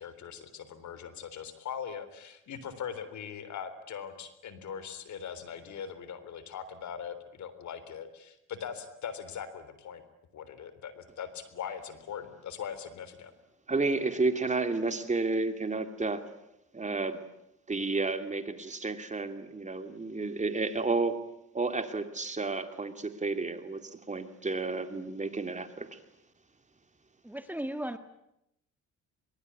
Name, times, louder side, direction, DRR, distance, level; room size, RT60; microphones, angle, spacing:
voice 1, 0.0-10.0 10.3-13.3, left 7 dB, 70° left, 13 dB, 3.6 m, -41 dB
voice 2, 13.7-16.2 16.7-17.2 17.7-21.2 21.5-26.0, right 3 dB, 25° right, 8 dB, 2.7 m, -31 dB
voice 3, 27.2-28.0, right 1 dB, 5° right, 9 dB, 1.6 m, -35 dB
23.0 x 23.0 x 9.7 m, 0.82 s
cardioid pair, 90°, 30 cm